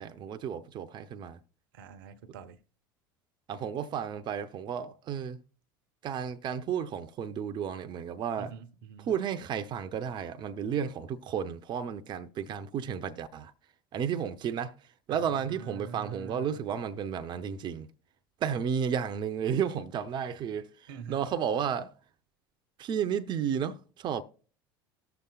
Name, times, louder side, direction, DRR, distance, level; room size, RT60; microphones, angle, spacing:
voice 1, 0.0-1.4 3.5-5.4 6.0-8.5 9.1-13.5 13.9-14.7 15.1-17.9 18.4-20.7 21.1-21.9 22.8-24.2, right 8 dB, 40° right, 0.6 m, -32 dB
voice 2, 1.7-2.6 8.4-9.1 15.1-16.7 20.9-21.3, right 7 dB, 70° right, 0.8 m, -45 dB
18.5 x 6.9 x 2.3 m
hypercardioid pair, 75°, 12 cm